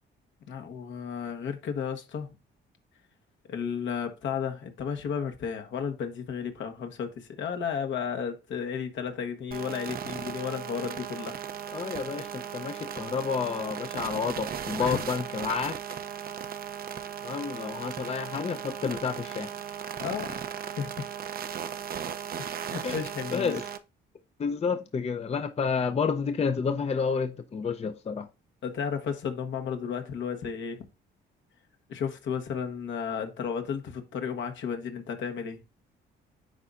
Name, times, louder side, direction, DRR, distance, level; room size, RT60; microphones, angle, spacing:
voice 1, 0.5-2.3 3.5-11.4 14.8-15.0 18.4-18.5 20.0-20.4 20.8-21.1 22.5-23.6 28.6-30.8 31.9-35.6, left 7 dB, 70° left, 1.2 m, -33 dB
sound 1, 9.5-23.8, right 8 dB, 50° right, 0.6 m, -37 dB
voice 2, 11.7-16.0 17.2-19.5 22.8-23.0 23.3-23.5 24.4-28.3, left 5 dB, 30° left, 0.6 m, -30 dB
10.0 x 4.0 x 2.5 m
cardioid pair, 90°, 20 cm